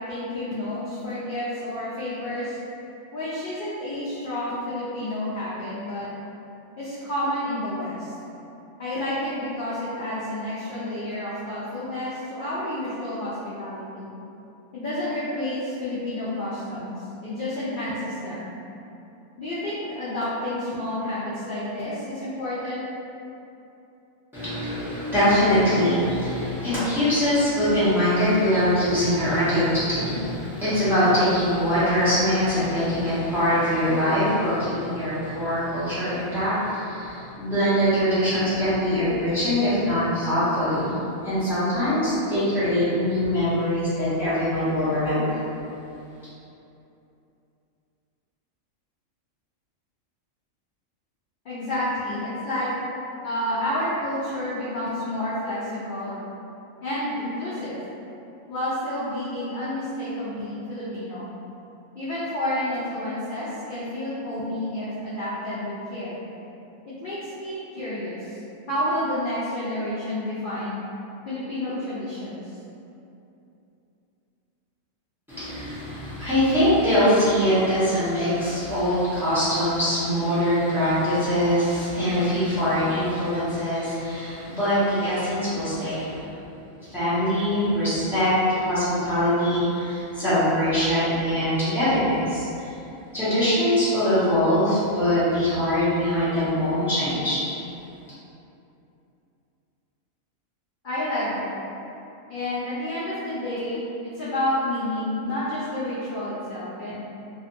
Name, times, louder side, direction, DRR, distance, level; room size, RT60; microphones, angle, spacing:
voice 1, 0.1-2.6 3.1-6.1 6.8-8.1 8.8-14.1 14.7-18.5 19.4-22.8 51.4-52.7 53.2-56.2 56.8-57.8 58.5-61.3 62.0-66.2 66.9-68.4 68.7-70.8 71.3-72.4 100.8-101.6 102.3-107.0, left 1 dB, 65° left, -10 dB, 0.5 m, -30 dB
voice 2, 24.3-41.0 41.2-45.3 75.3-86.3 86.9-92.7 93.1-97.4, equal, ahead, -15 dB, 0.8 m, -23 dB
2.5 x 2.5 x 2.5 m, 2.8 s
omnidirectional pair, 1.4 m